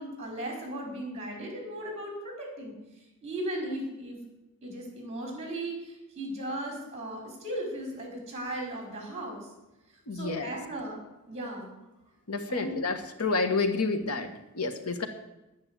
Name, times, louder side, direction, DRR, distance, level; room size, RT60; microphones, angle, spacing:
voice 1, 0.0-2.7 3.2-4.2 4.6-9.5 10.1-11.0 11.3-11.7 12.5-12.8, right 1 dB, 30° right, 0 dB, 5.1 m, -36 dB
voice 2, 10.1-10.6 12.3-15.1, left 3 dB, 85° left, 7 dB, 1.4 m, -29 dB
11.0 x 9.9 x 8.3 m, 0.96 s
head